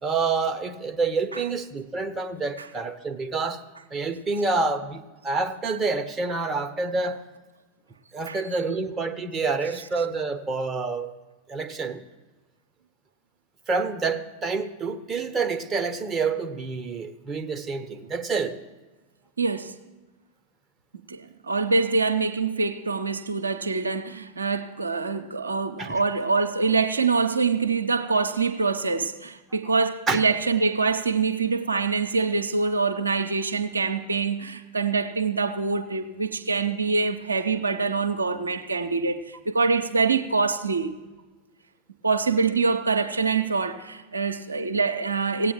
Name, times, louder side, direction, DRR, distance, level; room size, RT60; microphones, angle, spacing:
voice 1, 0.0-3.6 3.9-7.2 8.1-11.1 11.5-12.0 13.7-18.5 25.8-26.0 30.1-30.2, right 4 dB, 20° right, 0.7 m, -28 dB
voice 2, 19.4-19.7 21.1-40.9 42.0-45.5, right 4 dB, 75° right, 0.5 m, -25 dB
17.0 x 8.4 x 3.0 m
figure-of-eight pair, 90°, 0 cm